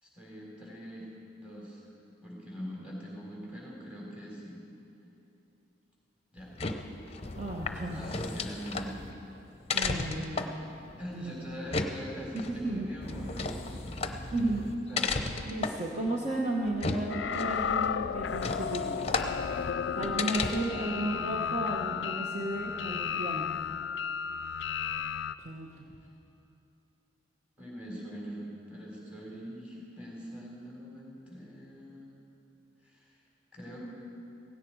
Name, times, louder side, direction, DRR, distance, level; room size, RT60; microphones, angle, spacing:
voice 1, 0.0-1.1 1.4-1.8 2.2-4.6 6.3-6.5 7.9-8.9 11.0-14.0 14.9-15.2 27.6-32.1 32.8-33.2 33.5-33.8, equal, 5° right, -4 dB, 4.0 m, -43 dB
sound 1, 6.4-20.9, left 3 dB, 35° left, 0.7 m, -35 dB
voice 2, 7.3-8.0 9.7-10.5 11.1-11.4 12.3-12.9 14.3-14.6 15.4-19.1 19.9-23.4 25.4-25.9, right 1 dB, 35° right, -3 dB, 1.3 m, -34 dB
sound 2, 17.1-25.3, left 7 dB, 65° left, 0.4 m, -33 dB
16.5 x 16.5 x 4.8 m, 2.8 s
head